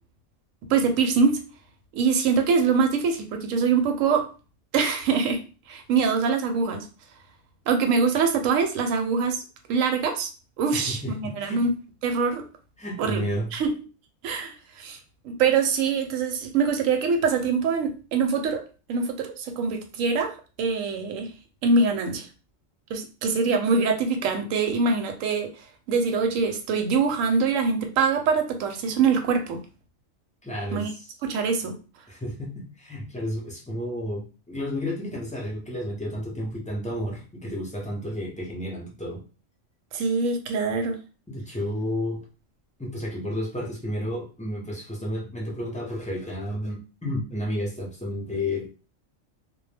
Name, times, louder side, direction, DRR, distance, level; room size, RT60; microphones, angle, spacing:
voice 1, 0.7-1.4 1.9-4.3 4.7-5.4 5.7-6.9 7.7-9.4 9.7-10.3 10.6-11.7 12.0-12.4 13.0-13.3 13.5-13.7 14.2-15.0 15.2-18.6 18.9-21.3 21.6-22.3 22.9-25.5 25.9-29.6 30.7-30.9 31.2-31.7 39.9-41.0, right 5 dB, 85° right, 5 dB, 1.0 m, -24 dB
voice 2, 10.7-11.6 12.8-13.5 30.4-31.1 32.1-39.2 41.3-42.2 42.8-48.7, left 1 dB, 10° left, -2 dB, 0.4 m, -31 dB
2.2 x 2.1 x 3.2 m, 0.34 s
omnidirectional pair, 1.3 m